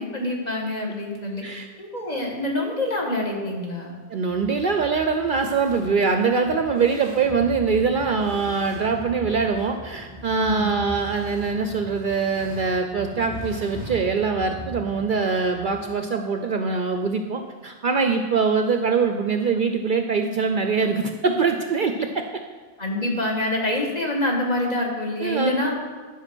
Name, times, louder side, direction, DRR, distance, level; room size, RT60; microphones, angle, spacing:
voice 1, 0.0-1.4 1.8-4.0 10.4-10.8 22.8-25.7, left 1 dB, 40° left, -1 dB, 1.5 m, -26 dB
voice 2, 4.1-22.2 25.2-25.5, right 5 dB, 55° right, 6 dB, 0.6 m, -23 dB
sound 1, 4.3-15.9, right 1 dB, 20° left, 2.5 m, -40 dB
11.0 x 5.0 x 6.1 m, 1.4 s
omnidirectional pair, 1.2 m